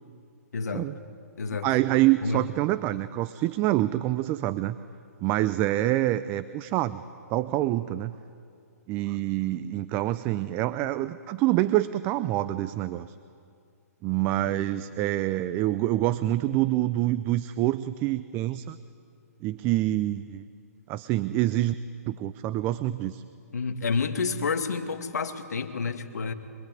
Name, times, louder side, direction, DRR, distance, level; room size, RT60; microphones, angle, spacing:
voice 1, 0.5-0.9 1.4-1.7 2.2-2.5 14.7-14.8 23.5-26.3, left 5 dB, 80° left, 7 dB, 2.2 m, -29 dB
voice 2, 1.6-4.8 5.2-7.0 7.3-8.1 8.9-13.1 14.0-18.8 19.4-20.4 20.9-21.7 22.1-23.2, right 15 dB, 25° right, 14 dB, 0.5 m, -26 dB
25.0 x 22.0 x 9.4 m, 2.3 s
hypercardioid pair, 145°, 9 cm